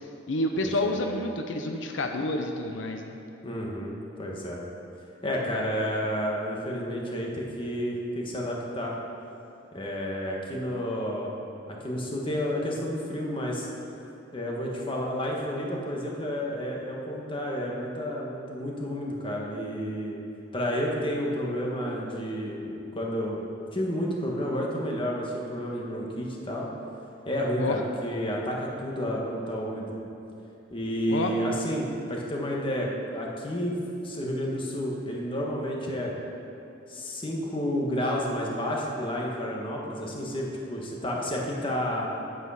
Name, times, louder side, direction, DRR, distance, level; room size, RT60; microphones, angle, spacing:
voice 1, 0.3-3.2 27.6-27.8 31.1-31.3, left 1 dB, 85° left, 4 dB, 0.7 m, -29 dB
voice 2, 3.4-4.6 5.2-8.9 9.7-11.3 11.7-13.7 14.3-20.2 20.5-23.5 23.7-26.7 27.2-29.9 30.7-33.8 34.0-36.1 36.9-42.1, equal, 30° left, -2 dB, 1.4 m, -30 dB
9.3 x 8.0 x 5.7 m, 2.8 s
head